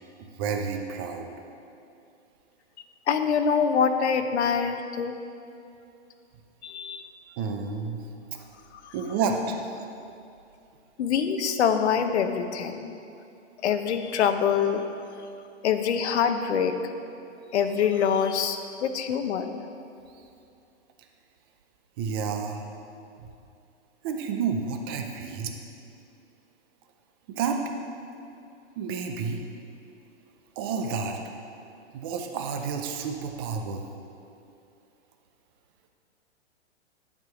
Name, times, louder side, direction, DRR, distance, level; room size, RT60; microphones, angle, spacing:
voice 1, 0.2-1.3 7.4-8.1 8.9-9.8 22.0-22.7 24.0-25.5 27.3-27.6 28.8-29.4 30.6-31.2 31.9-33.9, right 5 dB, 20° right, 4 dB, 0.4 m, -30 dB
voice 2, 3.1-5.2 6.6-7.0 8.7-8.9 11.0-12.9 13.6-14.8 15.6-16.7 17.5-19.6, left 7 dB, 70° left, 8 dB, 0.9 m, -25 dB
11.0 x 4.7 x 5.8 m, 2.6 s
hypercardioid pair, 150°, 35 cm